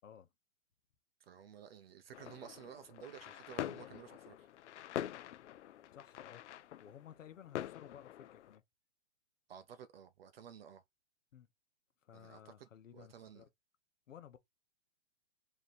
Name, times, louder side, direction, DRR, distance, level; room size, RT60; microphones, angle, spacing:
voice 1, 1.2-4.5 9.5-10.8 12.1-13.5, right 8 dB, 50° right, 0.5 m, -54 dB
sound 1, 2.1-8.6, left 12 dB, 65° left, 0.5 m, -45 dB
voice 2, 5.9-6.5 6.8-8.6 11.3-11.5 12.0-13.5 14.1-14.4, left 9 dB, 80° left, 1.0 m, -55 dB
3.3 x 2.8 x 4.0 m
hypercardioid pair, 150°, 38 cm